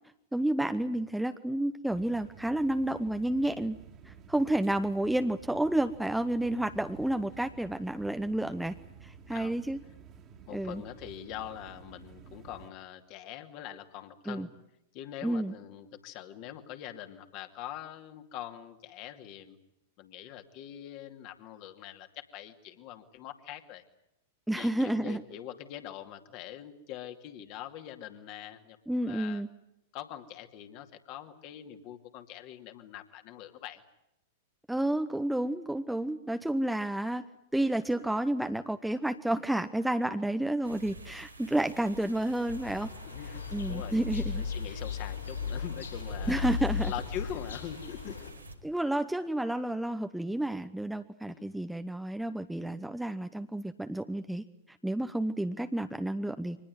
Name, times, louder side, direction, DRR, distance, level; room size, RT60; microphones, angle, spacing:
voice 1, 0.3-3.8 4.1-8.8 9.0-9.8 10.5-10.8 14.3-14.5 15.2-15.5 24.5-25.2 28.9-29.5 34.7-37.2 37.5-42.9 43.5-44.4 46.3-46.9 48.6-54.4 54.8-56.6, right 1 dB, 5° right, 9 dB, 1.0 m, -30 dB
sound 1, 1.9-12.7, right 6 dB, 30° right, 2.3 m, -52 dB
voice 2, 9.3-9.6 10.5-14.5 14.9-19.6 20.0-23.8 24.6-29.4 29.9-33.8 43.1-44.0 44.4-46.5 46.8-48.2 51.3-51.5, left 11 dB, 40° left, 6 dB, 2.5 m, -43 dB
sound 2, 40.6-48.6, right 1 dB, 85° right, 3.0 m, -45 dB
sound 3, 42.5-48.3, left 6 dB, 75° left, 7.7 m, -36 dB
25.0 x 20.0 x 9.4 m, 0.84 s
figure-of-eight pair, 95°, 0 cm